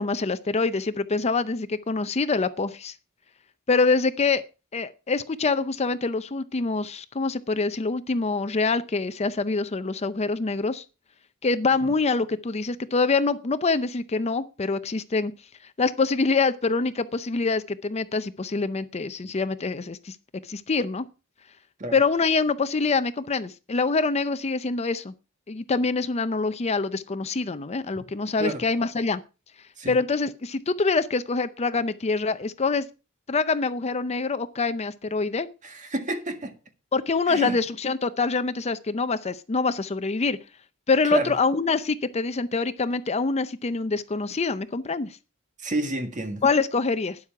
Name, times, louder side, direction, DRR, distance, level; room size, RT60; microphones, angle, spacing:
voice 1, 0.0-2.9 3.7-4.4 4.7-10.8 11.4-15.3 15.8-20.2 20.5-21.1 21.9-25.1 25.5-29.2 29.9-32.8 33.3-35.5 36.9-40.4 40.9-45.2 46.4-47.2, left 4 dB, 30° left, 0.6 m, -25 dB
voice 2, 35.6-36.5 37.3-37.6 41.0-41.3 45.6-46.4, right 1 dB, 35° right, 1.7 m, -30 dB
12.0 x 9.9 x 4.7 m
head